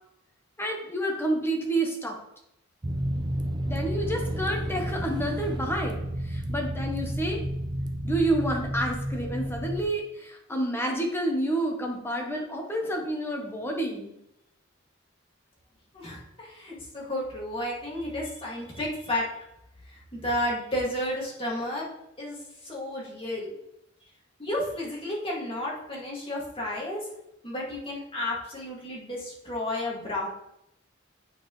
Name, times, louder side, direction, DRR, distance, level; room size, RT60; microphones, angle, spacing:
voice 1, 0.6-2.2 3.7-7.4 8.0-14.1, right 1 dB, 10° left, 1 dB, 1.1 m, -29 dB
sound 1, 2.8-9.8, right 1 dB, 20° right, 0.6 m, -31 dB
voice 2, 15.9-19.3 19.9-21.9 22.2-22.4 22.6-23.5 24.4-27.0 27.4-30.3, left 1 dB, 30° left, -4 dB, 2.3 m, -32 dB
8.6 x 4.8 x 3.2 m, 0.81 s
head